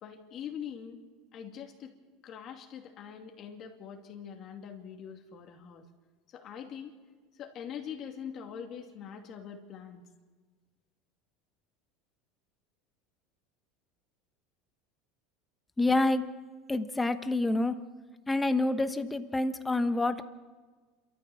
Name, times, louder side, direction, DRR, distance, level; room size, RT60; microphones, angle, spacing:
voice 1, 0.0-1.0 1.3-1.9 2.2-5.8 6.3-7.0 7.4-10.1, left 8 dB, 45° left, 2 dB, 2.5 m, -43 dB
voice 2, 15.8-16.2 16.7-17.7 18.3-20.2, left 2 dB, 10° left, 9 dB, 1.2 m, -27 dB
28.0 x 13.5 x 7.1 m, 1.4 s
supercardioid pair, 125°, 0 cm